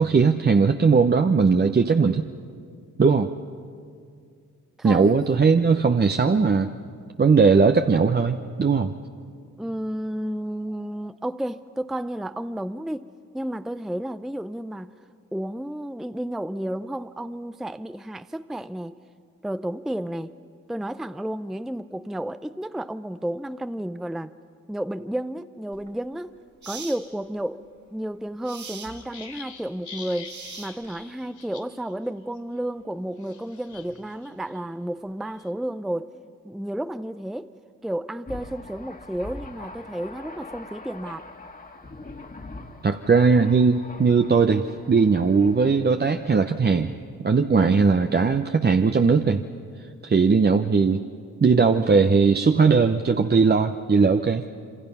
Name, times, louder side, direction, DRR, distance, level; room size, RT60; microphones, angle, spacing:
voice 1, 0.0-2.2 3.0-3.3 4.8-6.7 7.2-8.9 42.8-46.9 47.2-49.4 50.0-51.0 51.4-54.4, right 5 dB, 30° right, 0.9 m, -19 dB
voice 2, 4.8-5.2 9.6-13.0 13.3-14.9 15.3-19.0 19.4-20.4 20.7-24.3 24.7-26.3 26.7-36.1 36.4-37.5 37.8-41.3, right 1 dB, ahead, 0.6 m, -32 dB
sound 1, 25.7-25.9 26.6-27.0 28.4-28.9 30.2-31.0, right 5 dB, 55° right, 2.9 m, -40 dB
sound 2, 28.9-31.9 32.2-32.4 33.2-34.6 35.1-35.5, left 6 dB, 55° left, 3.3 m, -44 dB
Thunder, 38.3-46.4, left 2 dB, 25° left, 2.0 m, -43 dB
27.0 x 25.0 x 5.6 m
supercardioid pair, 60°, 35 cm